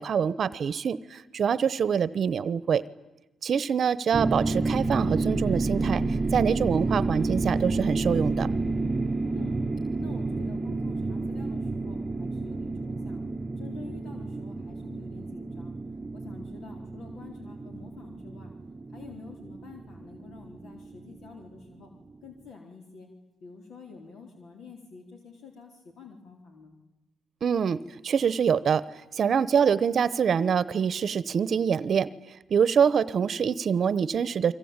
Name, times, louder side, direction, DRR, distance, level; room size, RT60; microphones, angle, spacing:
voice 1, 0.0-2.8 3.4-6.0 6.3-8.5 27.4-28.8 29.2-32.1 32.5-34.5, right 7 dB, 55° right, 18 dB, 0.9 m, -25 dB
sound 1, 4.1-21.3, right 3 dB, 25° right, 0.9 m, -30 dB
voice 2, 10.0-13.2 13.6-15.8 16.1-18.5 18.9-21.9 22.2-23.1 23.4-26.8, left 5 dB, 70° left, 2 dB, 4.0 m, -47 dB
26.0 x 24.5 x 8.9 m, 1.0 s
cardioid pair, 90°, 0 cm